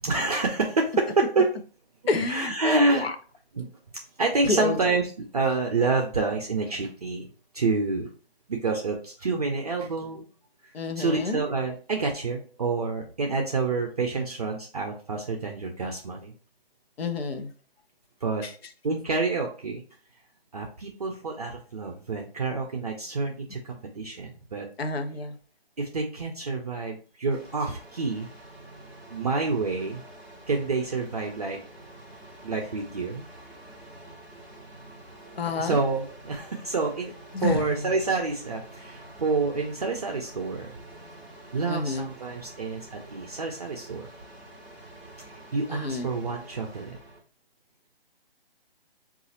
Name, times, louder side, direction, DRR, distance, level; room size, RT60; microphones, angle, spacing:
voice 1, 0.0-1.5 2.0-3.1 3.5-3.7 4.2-7.3 7.5-8.1 8.5-10.3 10.6-16.3 18.2-18.4 18.8-19.8 20.5-24.7 25.8-28.3 29.1-30.0 30.5-31.6 32.4-33.2 35.6-40.8 41.5-44.1 45.2-47.0, right 3 dB, 40° right, 1 dB, 0.5 m, -28 dB
voice 2, 2.1-3.1 4.5-4.8 10.7-11.4 17.0-17.5 24.8-25.4 35.4-35.8 37.3-37.8 41.7-42.1 45.7-46.1, left 3 dB, 75° left, 7 dB, 0.8 m, -28 dB
sound 1, 27.3-47.2, right 1 dB, 10° left, 0.5 m, -47 dB
3.9 x 2.4 x 4.0 m, 0.40 s
hypercardioid pair, 165°, 30 cm